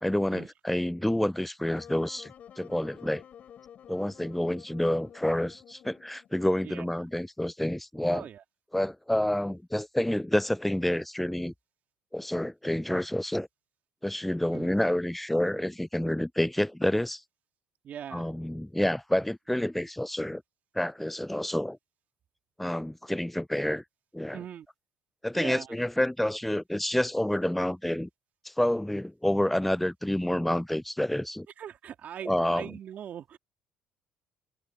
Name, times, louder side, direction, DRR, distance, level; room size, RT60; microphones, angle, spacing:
voice 1, 0.0-3.2 3.9-8.2 8.7-11.5 12.1-13.5 14.0-17.2 18.1-20.4 20.8-21.8 22.6-23.8 24.1-24.4 25.2-28.1 28.4-31.5 32.3-32.7, left 1 dB, 5° left, 0.4 m, -28 dB
Wind instrument woodwind instrument, 1.7-6.8, left 9 dB, 55° left, 2.9 m, -51 dB
voice 2, 8.1-8.4 14.5-14.7 17.8-18.3 24.3-24.7 25.3-25.7 31.6-33.4, right 9 dB, 55° right, 3.4 m, -41 dB
supercardioid pair, 75°, 3 cm